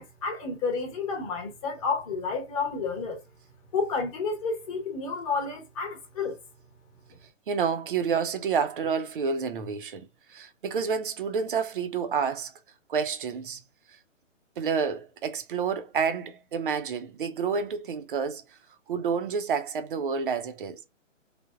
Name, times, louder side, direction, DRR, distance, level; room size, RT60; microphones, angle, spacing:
voice 1, 0.0-3.2 3.7-6.4, left 4 dB, 25° left, 1.0 m, -30 dB
voice 2, 7.5-12.5 12.9-13.6 14.6-18.4 18.9-20.9, right 6 dB, 45° right, 0.6 m, -29 dB
3.3 x 2.1 x 2.3 m
hypercardioid pair, 150°, 38 cm